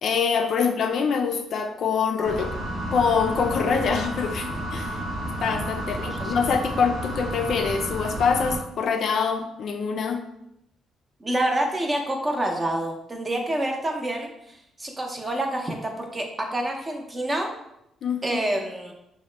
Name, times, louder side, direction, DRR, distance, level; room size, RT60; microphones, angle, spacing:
voice 1, 0.0-2.6 2.9-5.0 5.4-10.2 18.0-18.4, left 6 dB, 65° left, 5 dB, 0.3 m, -25 dB
sound 1, 2.2-8.6, equal, 70° right, 0.8 m, -31 dB
voice 2, 11.2-17.5 18.2-18.9, right 1 dB, 25° right, 2 dB, 0.6 m, -27 dB
2.9 x 2.1 x 3.2 m, 0.81 s
cardioid pair, 90°, 0 cm